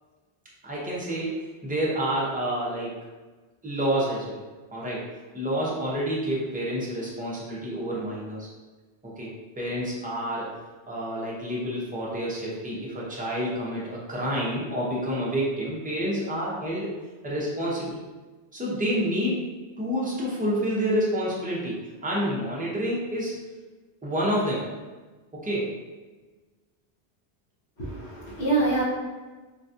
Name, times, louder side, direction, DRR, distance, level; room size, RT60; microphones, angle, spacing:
voice 1, 0.6-2.9 3.6-4.4 4.7-5.0 5.3-8.5 9.0-9.3 9.6-10.5 10.9-16.9 17.2-18.0 18.5-19.5 19.8-23.4 24.0-24.7 25.3-25.7, equal, 10° right, -6 dB, 0.5 m, -28 dB
voice 2, 27.8-28.8, right 3 dB, 70° left, -5 dB, 1.2 m, -25 dB
3.9 x 2.3 x 2.6 m, 1.3 s
omnidirectional pair, 1.2 m